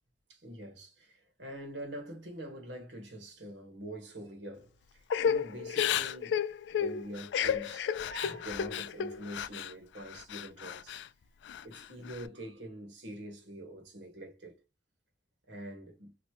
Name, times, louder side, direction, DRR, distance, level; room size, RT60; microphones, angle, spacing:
voice 1, 0.3-11.1 11.6-14.6 15.5-16.1, right 1 dB, 85° right, 1.4 m, -45 dB
Crying sobbing / Breathing, 5.1-9.7 10.1-11.1 11.5-12.2, left 8 dB, 80° left, 0.3 m, -32 dB
3.1 x 2.7 x 2.9 m
head